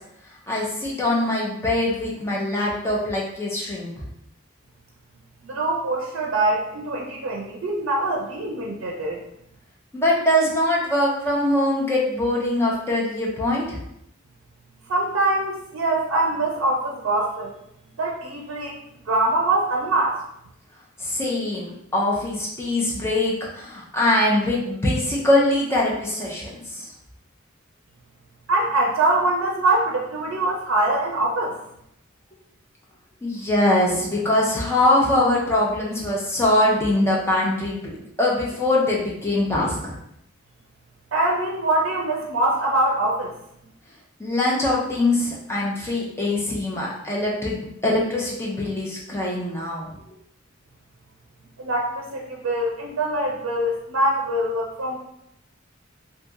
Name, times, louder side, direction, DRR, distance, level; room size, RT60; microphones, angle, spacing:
voice 1, 0.5-3.9 9.9-13.8 21.0-26.9 33.2-37.9 38.2-39.9 44.2-49.9, left 1 dB, 15° left, -4 dB, 0.6 m, -22 dB
voice 2, 5.4-9.2 14.9-17.5 18.0-18.8 19.1-20.2 28.5-31.6 41.1-43.4 51.6-55.0, right 2 dB, 75° right, -1 dB, 0.5 m, -23 dB
2.8 x 2.6 x 2.3 m, 0.77 s
head